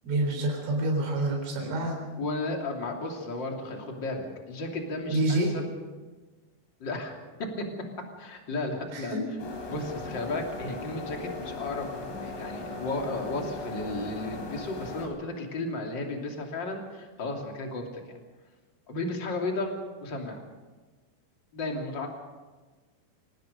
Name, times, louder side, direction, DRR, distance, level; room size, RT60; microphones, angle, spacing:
voice 1, 0.0-2.0 5.1-5.5 8.9-9.3, right 1 dB, 90° right, 0 dB, 6.6 m, -27 dB
voice 2, 2.2-5.6 6.8-7.6 8.2-9.2 9.7-11.9 12.2-18.2 18.9-19.7 20.0-20.4 21.5-22.1, left 2 dB, 30° left, 1 dB, 2.6 m, -34 dB
sound 1, 9.4-15.1, left 3 dB, 75° left, 6.2 m, -38 dB
27.0 x 18.5 x 5.3 m, 1.3 s
omnidirectional pair, 5.5 m